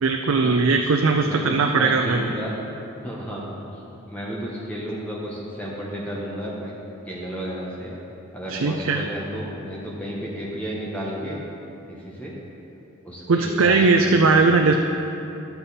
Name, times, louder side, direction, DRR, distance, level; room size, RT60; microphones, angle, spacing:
voice 1, 0.0-2.3 8.5-9.0 13.3-14.7, right 4 dB, 75° right, 4 dB, 0.5 m, -19 dB
voice 2, 1.1-2.5 3.0-3.5 3.8-6.7 7.1-7.9 8.3-11.4 12.0-12.3 13.0-14.7, equal, 5° left, -5 dB, 1.2 m, -32 dB
12.5 x 7.0 x 4.2 m, 2.8 s
head